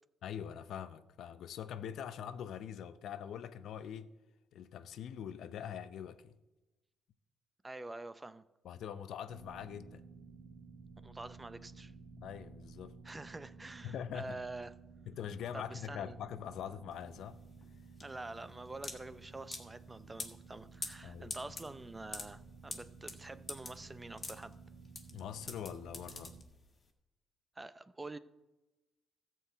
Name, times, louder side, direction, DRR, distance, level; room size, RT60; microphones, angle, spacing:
voice 1, 0.2-4.1 4.5-6.3 8.6-10.1 12.2-13.0 13.8-14.4 15.1-17.4 21.0-21.4 25.1-26.3, left 9 dB, 75° left, 0.6 m, -43 dB
voice 2, 7.6-8.4 11.0-11.9 13.0-14.7 15.5-16.2 18.0-24.5 27.6-28.2, right 2 dB, 20° right, 0.5 m, -46 dB
sound 1, 9.3-26.4, right 4 dB, 35° right, 1.5 m, -54 dB
sound 2, 16.9-26.8, left 3 dB, 35° left, 1.7 m, -46 dB
14.0 x 4.6 x 7.9 m
cardioid pair, 90°, 0 cm